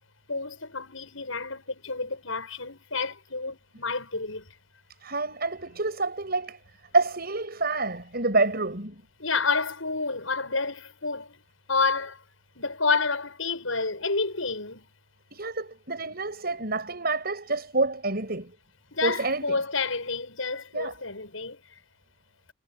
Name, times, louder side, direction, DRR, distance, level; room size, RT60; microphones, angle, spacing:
voice 1, 0.3-4.5 9.2-11.4 11.7-12.2 12.6-14.9 18.9-21.6, left 4 dB, 85° left, 7.2 m, -29 dB
voice 2, 5.0-6.6 6.9-9.0 15.3-18.5 19.0-19.6 20.7-20.9, right 3 dB, 50° right, 7.6 m, -28 dB
head